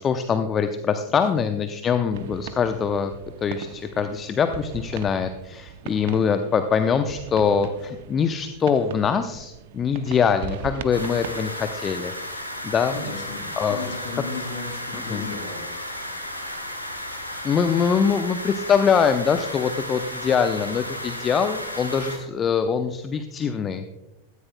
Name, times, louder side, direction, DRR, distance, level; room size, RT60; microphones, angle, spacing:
voice 1, 0.0-3.1 3.4-12.1 12.6-13.0 13.6-13.9 15.1-15.3 17.4-23.9, left 6 dB, 25° left, 8 dB, 0.7 m, -23 dB
sound 1, 2.1-11.5, right 9 dB, 50° right, 0.7 m, -39 dB
sound 2, 10.9-22.2, left 1 dB, 90° right, 2.6 m, -34 dB
voice 2, 12.9-15.9, left 4 dB, 55° left, 4 dB, 2.9 m, -35 dB
16.5 x 14.0 x 2.2 m, 1.0 s
figure-of-eight pair, 90°, 0 cm